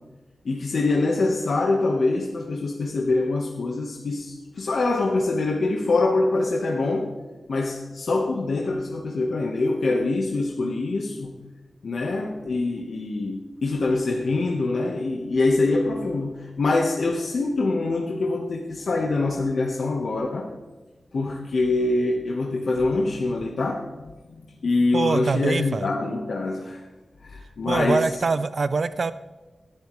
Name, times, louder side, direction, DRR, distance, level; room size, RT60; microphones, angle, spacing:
voice 1, 0.4-7.1 7.5-11.3 11.8-20.5 21.1-26.9 27.2-28.1, left 3 dB, 70° left, 0 dB, 1.2 m, -24 dB
voice 2, 24.9-25.9 27.4-29.1, right 4 dB, 55° right, 13 dB, 0.4 m, -24 dB
18.5 x 11.5 x 3.2 m, 1.2 s
wide cardioid pair, 100°, 0 cm